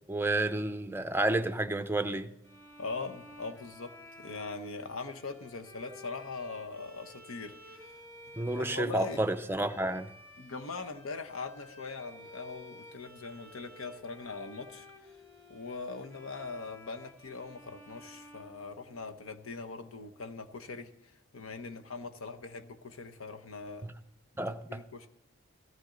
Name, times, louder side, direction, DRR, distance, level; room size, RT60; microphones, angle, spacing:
voice 1, 0.1-2.3 8.4-10.1 23.8-23.9 24.4-24.8, right 2 dB, 10° right, 0.5 m, -30 dB
sound 1, 2.4-19.3, left 1 dB, 15° left, 2.2 m, -53 dB
voice 2, 2.8-8.0 8.4-9.2 10.4-15.2 15.5-23.9 24.4-25.1, left 4 dB, 85° left, 1.0 m, -41 dB
15.5 x 14.5 x 3.9 m
head